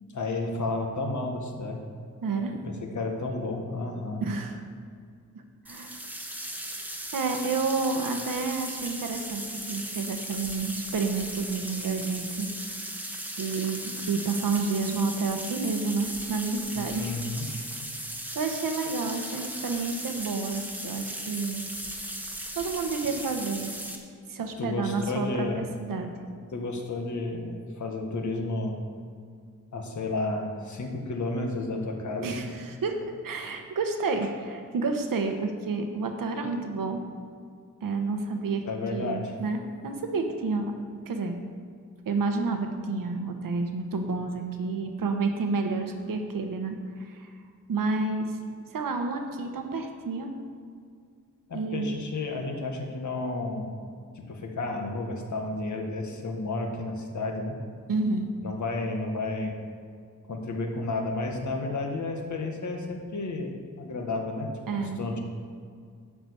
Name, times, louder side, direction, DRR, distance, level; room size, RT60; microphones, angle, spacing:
voice 1, 0.1-1.8 2.6-4.2 16.8-17.5 24.6-25.6 26.3-28.8 29.7-32.6 38.6-39.3 51.5-53.7 54.1-57.6 58.4-59.5 60.3-65.2, left 2 dB, 65° left, 2 dB, 1.7 m, -32 dB
voice 2, 2.2-2.6 4.2-4.6 5.7-6.0 7.1-12.8 13.4-17.2 18.3-21.6 22.5-23.7 24.3-26.1 32.2-37.0 37.8-40.8 41.1-41.4 42.0-47.3 47.7-48.4 48.7-50.4 51.5-51.9 57.9-58.3 64.7-65.0, right 4 dB, 85° right, 5 dB, 1.3 m, -30 dB
sound 1, 5.6-23.9, right 1 dB, 5° right, 1.3 m, -37 dB
12.0 x 5.0 x 8.4 m, 2.2 s
wide cardioid pair, 130°, 32 cm